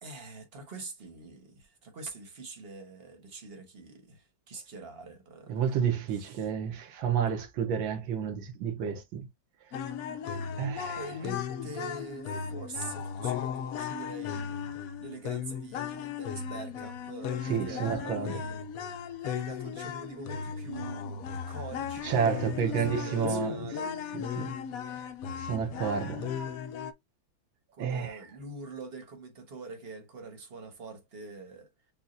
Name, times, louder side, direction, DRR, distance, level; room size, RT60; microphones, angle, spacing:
voice 1, 0.0-5.6 6.2-6.5 10.9-14.6 15.0-18.6 19.2-24.0 27.7-31.7, right 3 dB, 35° right, 1.2 m, -44 dB
voice 2, 5.5-9.3 10.6-11.0 17.5-18.4 22.0-23.6 24.1-24.5 24.9-25.0 25.4-26.3 27.8-28.2, right 7 dB, 85° right, 1.8 m, -30 dB
sound 1, 9.7-26.9, left 7 dB, 75° left, 0.8 m, -36 dB
7.1 x 2.5 x 2.6 m
omnidirectional pair, 2.1 m